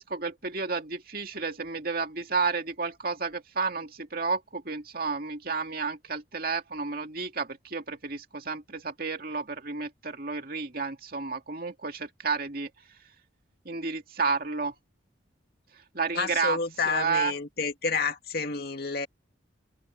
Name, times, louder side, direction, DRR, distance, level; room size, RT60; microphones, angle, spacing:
voice 1, 0.0-12.7 13.6-14.7 15.9-16.6 16.9-17.3, right 4 dB, 50° right, 2.4 m, -31 dB
voice 2, 16.1-19.1, left 4 dB, 55° left, 2.3 m, -29 dB
head